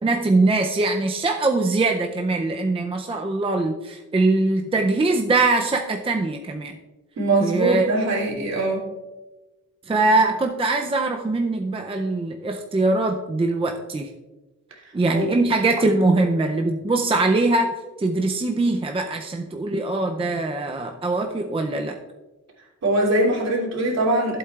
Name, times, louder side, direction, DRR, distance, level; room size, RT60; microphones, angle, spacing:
voice 1, 0.0-6.8 7.4-7.9 9.9-14.1 14.9-17.7 18.0-22.0, right 2 dB, 20° right, 3 dB, 0.5 m, -22 dB
voice 2, 7.2-8.9 14.8-15.3 22.6-24.4, right 2 dB, 60° right, -3 dB, 2.8 m, -22 dB
15.0 x 8.0 x 2.4 m, 1.1 s
wide cardioid pair, 150°, 30 cm